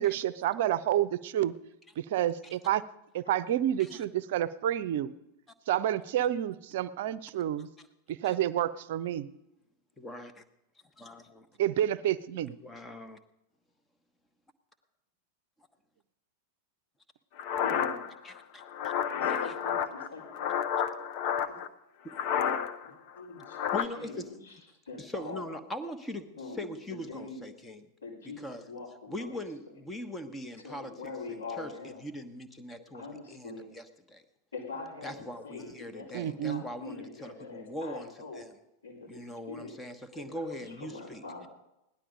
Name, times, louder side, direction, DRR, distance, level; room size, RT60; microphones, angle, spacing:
voice 1, 0.0-1.5 2.0-2.8 3.1-5.1 5.7-7.7 8.1-9.3 11.6-12.6 36.1-36.6, right 11 dB, 55° right, 16 dB, 0.6 m, -29 dB
voice 2, 10.0-10.4 11.0-11.5 12.6-13.2 18.2-18.9 19.3-19.5 22.0-22.2 23.7-24.4 25.0-26.3 26.6-27.8 28.4-28.6 29.1-30.9 31.3-31.7 32.0-34.2 35.0-38.1 38.3-38.5 39.1-41.2, left 1 dB, 10° left, 10 dB, 1.3 m, -41 dB
sound 1, 17.4-21.7 22.1-22.9 23.2-23.9, left 8 dB, 45° left, 0.9 m, -31 dB
voice 3, 17.6-18.0 19.1-20.5 21.4-21.6 22.8-23.6 24.0-24.6 24.9-25.5 26.4-27.4 28.0-29.4 30.6-32.0 32.9-33.7 34.5-35.2 35.4-38.4 38.8-39.7 40.2-41.5, left 3 dB, 75° left, -4 dB, 3.7 m, -43 dB
17.5 x 11.5 x 5.2 m, 0.89 s
figure-of-eight pair, 90°, 0 cm